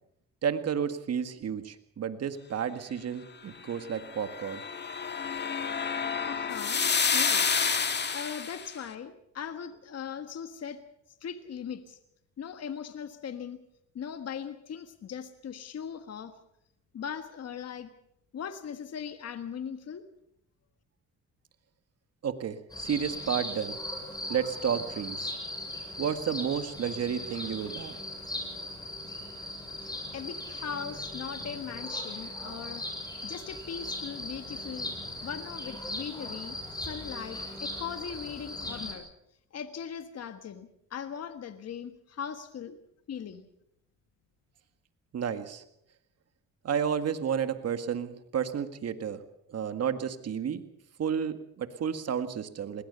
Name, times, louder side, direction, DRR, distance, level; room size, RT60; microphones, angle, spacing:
voice 1, 0.4-4.6 22.2-23.8 24.3-25.3 26.0-28.0 45.1-45.6 46.6-49.2 49.5-50.6 51.0-52.8, right 8 dB, 55° right, 10 dB, 1.8 m, -31 dB
sound 1, 4.0-8.7, left 5 dB, 35° left, 1.8 m, -29 dB
voice 2, 6.2-7.5 8.1-10.8 11.2-12.0 12.4-13.6 13.9-16.3 16.9-17.9 18.3-20.0 30.1-32.8 33.2-34.9 35.2-39.1 39.5-42.8 43.1-43.4, left 7 dB, 55° left, 9 dB, 1.5 m, -39 dB
sound 2, 22.7-38.9, left 1 dB, 15° left, 7.8 m, -38 dB
21.0 x 19.0 x 6.9 m, 0.77 s
cardioid pair, 90°, 30 cm